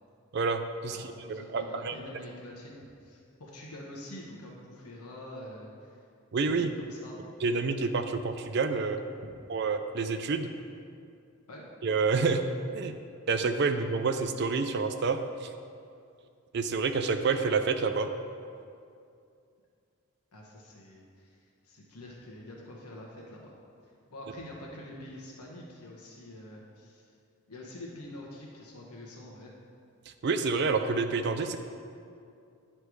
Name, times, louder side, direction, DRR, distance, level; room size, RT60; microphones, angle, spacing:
voice 1, 0.3-1.9 6.3-6.7 7.4-9.0 9.5-10.5 11.8-12.4 12.7-12.9 13.3-15.5 16.5-18.1 30.2-31.6, right 4 dB, 50° right, 8 dB, 0.4 m, -28 dB
voice 2, 0.9-6.0 6.4-7.2 9.2-9.3 11.5-11.6 20.3-23.5 23.8-27.1 27.5-29.5, left 1 dB, 85° left, -2 dB, 1.0 m, -46 dB
9.9 x 3.3 x 4.6 m, 2.4 s
head